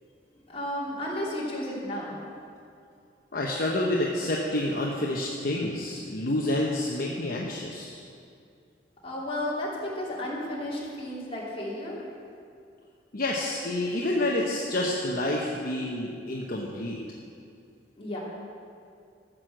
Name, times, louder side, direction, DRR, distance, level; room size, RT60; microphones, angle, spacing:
voice 1, 0.5-2.1 9.0-12.1 18.0-18.2, left 1 dB, 35° left, -5 dB, 2.9 m, -33 dB
voice 2, 3.3-8.0 13.1-17.0, left 1 dB, 55° left, -2 dB, 1.0 m, -28 dB
13.5 x 6.3 x 7.7 m, 2.4 s
head